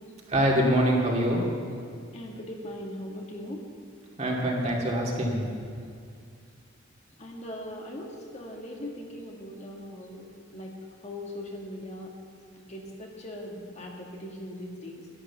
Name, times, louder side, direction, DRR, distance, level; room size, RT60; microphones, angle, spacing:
voice 1, 0.3-1.4 4.2-5.7, equal, 35° right, -2 dB, 2.4 m, -25 dB
voice 2, 2.1-3.6 7.2-10.3 10.5-10.8 11.0-12.1 12.7-15.1, left 1 dB, 35° left, 0 dB, 1.8 m, -40 dB
11.5 x 11.5 x 7.2 m, 2.3 s
head